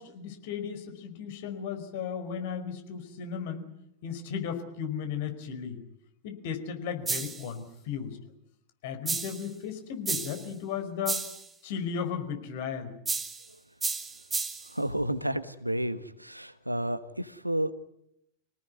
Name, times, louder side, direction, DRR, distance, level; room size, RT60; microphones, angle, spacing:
voice 1, 0.0-3.7 4.0-5.8 6.2-8.3 8.8-11.2 11.6-13.0, left 7 dB, 50° left, 7 dB, 4.8 m, -35 dB
sound 1, 7.1-7.5 9.1-9.5 10.1-10.5 11.1-11.5 13.1-13.5 13.8-14.7, right 4 dB, 15° right, 2.0 m, -32 dB
voice 2, 14.7-17.7, right 1 dB, 90° right, 13 dB, 1.4 m, -31 dB
26.5 x 18.5 x 9.6 m, 0.79 s
figure-of-eight pair, 90°, 0 cm